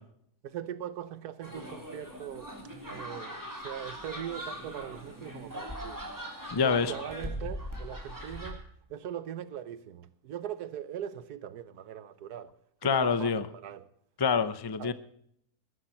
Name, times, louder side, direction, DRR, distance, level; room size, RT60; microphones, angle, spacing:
voice 1, 0.4-2.5 2.9-6.1 6.6-8.6 8.9-12.5 12.8-13.9 14.8-14.9, right 10 dB, 85° right, 1.4 m, -41 dB
sound 1, 1.4-8.5, equal, 10° right, 3.5 m, -40 dB
voice 2, 6.5-6.9 12.8-13.5 14.2-14.9, left 5 dB, 35° left, 0.4 m, -26 dB
21.0 x 11.5 x 4.4 m
omnidirectional pair, 1.6 m